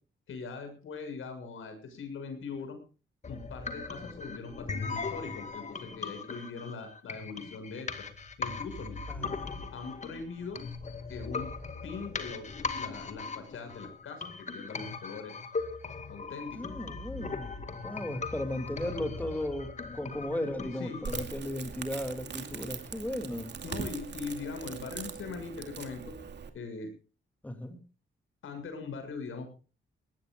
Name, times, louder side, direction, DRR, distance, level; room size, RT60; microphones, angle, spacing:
voice 1, 0.3-2.8 3.3-7.9 8.4-9.0 9.7-10.6 11.1-11.5 11.8-14.2 14.5-15.3 16.1-16.6 20.8-21.0 23.6-26.1 26.5-26.9 28.4-29.5, left 4 dB, 85° left, 7 dB, 6.8 m, -41 dB
sound 1, 3.2-21.2, left 4 dB, 35° left, 2.0 m, -39 dB
voice 2, 9.1-9.6 16.5-17.5 17.8-23.5 27.4-27.8, left 1 dB, 10° left, 6 dB, 2.8 m, -36 dB
Crackle, 21.0-26.5, right 6 dB, 60° right, 2.5 m, -41 dB
20.0 x 19.0 x 2.5 m, 0.35 s
wide cardioid pair, 135°, 20 cm